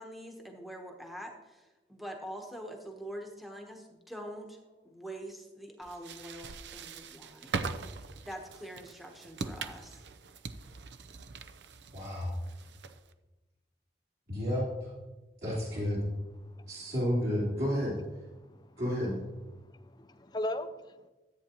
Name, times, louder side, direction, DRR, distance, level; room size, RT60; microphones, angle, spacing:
voice 1, 0.0-4.6 4.8-7.7 8.2-10.0, equal, ahead, 2 dB, 1.0 m, -44 dB
sound 1, 5.8-13.1, right 4 dB, 80° right, 0.6 m, -41 dB
voice 2, 11.9-12.3 14.3-14.9 15.4-16.0 16.7-17.9 18.8-19.2, equal, 60° right, -9 dB, 3.1 m, -31 dB
voice 3, 16.4-16.9 18.4-18.8 19.6-21.1, left 1 dB, 25° left, 10 dB, 0.5 m, -39 dB
13.5 x 8.5 x 3.0 m, 1.1 s
head